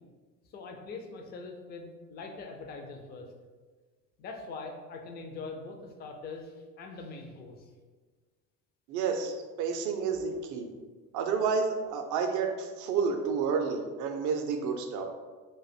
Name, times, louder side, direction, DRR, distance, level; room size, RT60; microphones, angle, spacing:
voice 1, 0.5-3.3 4.2-7.7, left 3 dB, 20° left, 3 dB, 0.4 m, -42 dB
voice 2, 8.9-10.7 11.1-15.0, right 5 dB, 40° right, 4 dB, 0.5 m, -30 dB
2.5 x 2.3 x 4.1 m, 1.4 s
figure-of-eight pair, 70°, 48 cm